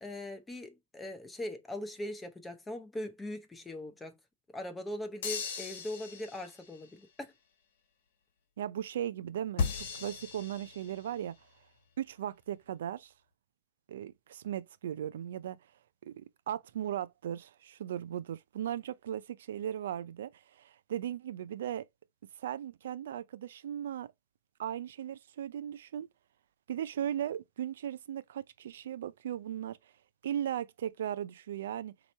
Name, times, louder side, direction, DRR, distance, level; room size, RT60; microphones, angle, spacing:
voice 1, 0.0-4.2 4.5-7.3, left 1 dB, 5° left, 0.6 m, -40 dB
sound 1, 5.2-6.7 9.6-11.2, left 5 dB, 60° left, 1.5 m, -37 dB
voice 2, 8.6-11.4 12.0-13.1 13.9-15.6 16.0-21.9 22.4-24.1 24.6-26.1 26.7-29.8 30.2-31.9, right 10 dB, 70° right, 0.3 m, -37 dB
4.4 x 3.0 x 4.1 m
supercardioid pair, 165°, 0 cm